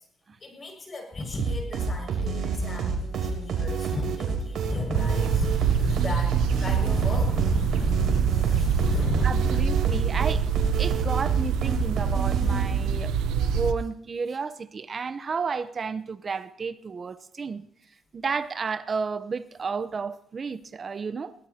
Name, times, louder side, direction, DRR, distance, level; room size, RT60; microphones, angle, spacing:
voice 1, 0.4-9.6, left 2 dB, 35° left, 6.4 m, -33 dB
sound 1, 1.4-13.0, right 4 dB, 70° right, 3.6 m, -29 dB
sound 2, 4.9-13.7, right 8 dB, 90° right, 0.9 m, -25 dB
voice 2, 9.2-10.4 10.8-17.6 18.1-21.3, right 5 dB, 40° right, 0.9 m, -32 dB
22.5 x 17.0 x 2.9 m
cardioid pair, 90°, 0 cm